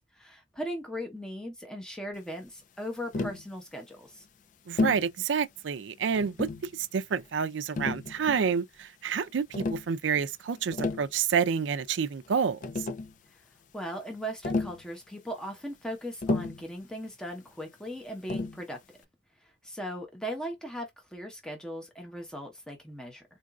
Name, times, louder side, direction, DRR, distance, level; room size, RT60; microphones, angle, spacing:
voice 1, 0.1-4.3 13.3-13.4 13.7-18.8 19.4-23.2, equal, 5° left, 0.8 m, -38 dB
Tap, 3.1-3.5 4.8-5.1 6.1-6.7 7.8-8.5 9.5-9.9 10.6-11.1 12.3-12.4 12.6-13.1 14.4-14.8 16.2-16.7 18.3-18.6, left 3 dB, 45° left, 0.3 m, -31 dB
voice 2, 4.7-12.6, right 6 dB, 80° right, 0.4 m, -29 dB
3.9 x 2.4 x 2.3 m
head